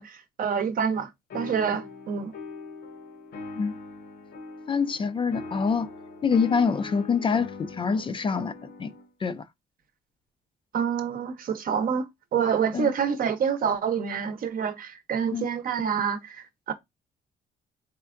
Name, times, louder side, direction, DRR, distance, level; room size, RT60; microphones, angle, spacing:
voice 1, 0.0-2.3 10.7-16.7, right 7 dB, 55° right, 0.7 m, -27 dB
sound 1, 1.3-9.1, left 3 dB, 65° left, 0.9 m, -41 dB
voice 2, 4.7-5.9 6.2-8.5 8.8-8.9 9.2-9.5 12.7-12.9 15.3-15.5, left 5 dB, 30° left, 0.3 m, -25 dB
4.4 x 3.3 x 2.5 m
cardioid pair, 115°, 17 cm